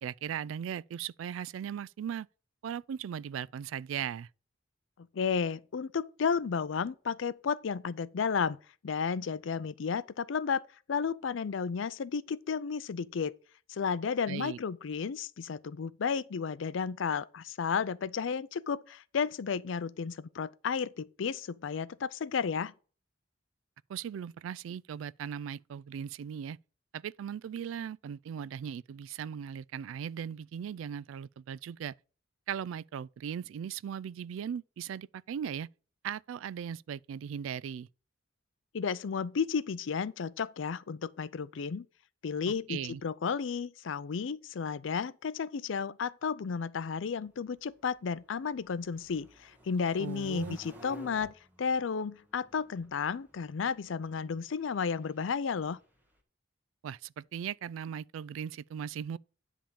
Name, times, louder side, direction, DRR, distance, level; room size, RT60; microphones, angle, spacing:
voice 1, 0.0-2.3 2.6-4.3 14.3-14.6 23.9-26.6 26.9-32.0 32.5-35.7 36.0-37.9 42.7-43.0 50.0-50.6 56.8-59.2, right 8 dB, 85° right, 0.3 m, -38 dB
voice 2, 5.1-8.6 8.8-13.4 13.7-22.7 38.7-41.9 42.2-55.8, left 6 dB, 75° left, 0.4 m, -33 dB
sound 1, 47.0-56.2, right 1 dB, 10° right, 1.6 m, -55 dB
10.0 x 3.6 x 7.1 m
head